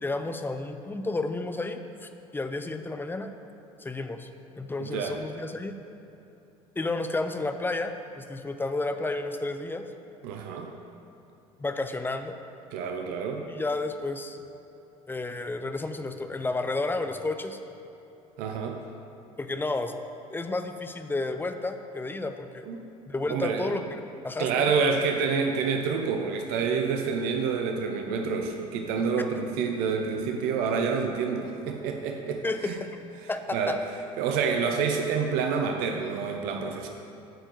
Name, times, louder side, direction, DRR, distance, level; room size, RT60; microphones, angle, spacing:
voice 1, 0.0-3.3 3.8-4.3 4.6-5.8 6.8-9.9 11.6-12.3 13.5-14.4 15.1-17.6 19.4-19.9 20.3-22.7 23.1-23.8 24.2-24.7 32.4-33.0 33.3-33.8, left 2 dB, 10° left, 8 dB, 0.5 m, -31 dB
voice 2, 4.8-5.2 10.2-10.7 12.7-13.4 18.4-18.8 22.7-22.8 23.3-23.8 24.4-32.7 33.5-33.8 34.2-36.9, right 5 dB, 60° right, 3 dB, 0.6 m, -28 dB
9.0 x 4.4 x 4.5 m, 2.9 s
figure-of-eight pair, 60°, 18 cm